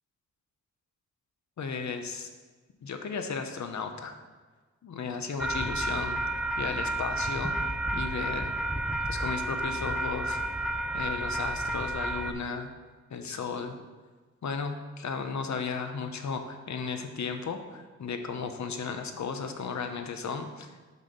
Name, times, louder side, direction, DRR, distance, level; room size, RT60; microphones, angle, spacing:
voice 1, 1.6-2.3 2.8-4.2 4.8-6.2 6.6-7.6 7.9-8.5 9.1-10.4 10.9-12.7 13.1-13.8 14.4-20.7, left 5 dB, 65° left, 6 dB, 0.8 m, -35 dB
sound 1, 5.4-12.3, right 1 dB, 5° right, 0.5 m, -31 dB
6.2 x 5.5 x 5.1 m, 1.4 s
wide cardioid pair, 110°, 30 cm